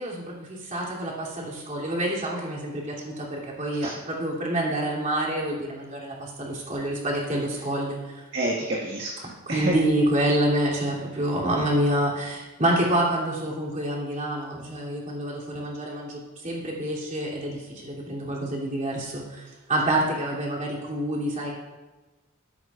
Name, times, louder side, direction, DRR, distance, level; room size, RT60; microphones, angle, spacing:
voice 1, 0.0-8.2 9.5-21.5, right 1 dB, 35° right, -4 dB, 2.9 m, -27 dB
voice 2, 8.3-9.8, right 1 dB, 60° right, -5 dB, 1.7 m, -28 dB
13.5 x 12.5 x 2.4 m, 1.2 s
head